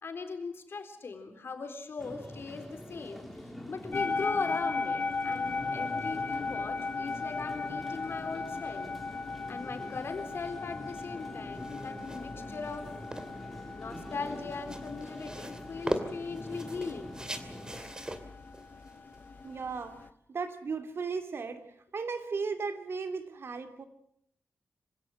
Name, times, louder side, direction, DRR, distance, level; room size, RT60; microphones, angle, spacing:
voice 1, 0.0-3.3 3.7-8.9 9.5-12.9 13.7-17.2 17.7-17.9, left 4 dB, 60° left, 7 dB, 3.9 m, -39 dB
sound 1, 2.0-17.8, left 1 dB, ahead, 4.2 m, -45 dB
sound 2, 3.9-20.1, left 4 dB, 40° left, 0.9 m, -37 dB
sound 3, 11.5-20.1, right 1 dB, 15° right, 2.7 m, -41 dB
voice 2, 19.4-20.0 20.3-21.7 21.9-23.8, right 5 dB, 60° right, 8 dB, 2.6 m, -35 dB
26.0 x 16.5 x 7.9 m, 0.70 s
wide cardioid pair, 95°, 5 cm